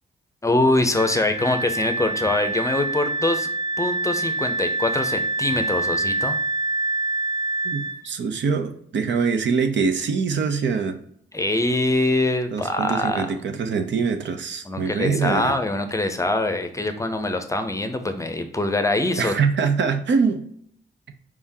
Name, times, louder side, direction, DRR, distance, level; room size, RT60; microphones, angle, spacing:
voice 1, 0.4-3.5 3.8-6.4 11.3-13.3 14.6-19.3, left 2 dB, 15° left, 7 dB, 0.6 m, -23 dB
Wind instrument woodwind instrument, 0.9-8.0, right 2 dB, 20° right, 0.7 m, -26 dB
voice 2, 7.6-11.0 12.5-15.5 19.2-20.4, right 5 dB, 70° right, 7 dB, 0.7 m, -23 dB
4.8 x 3.6 x 2.7 m, 0.65 s
cardioid pair, 90°, 19 cm